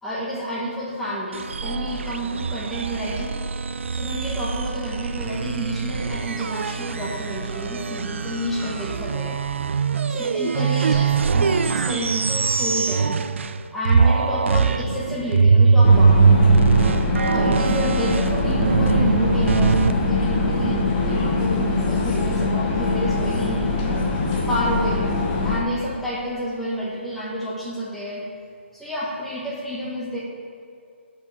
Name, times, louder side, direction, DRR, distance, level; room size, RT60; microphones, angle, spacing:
voice 1, 0.0-3.4 3.9-9.4 9.9-13.2 13.7-16.3 17.3-24.0 24.5-25.1 25.4-28.2 28.7-30.2, equal, ahead, -7 dB, 1.5 m, -29 dB
sound 1, 1.3-13.6 13.9-19.9, right 5 dB, 75° right, 0.4 m, -21 dB
sound 2, 15.8-25.6, left 3 dB, 25° left, 1.0 m, -23 dB
12.0 x 4.9 x 4.9 m, 2.4 s
hypercardioid pair, 160°, 7 cm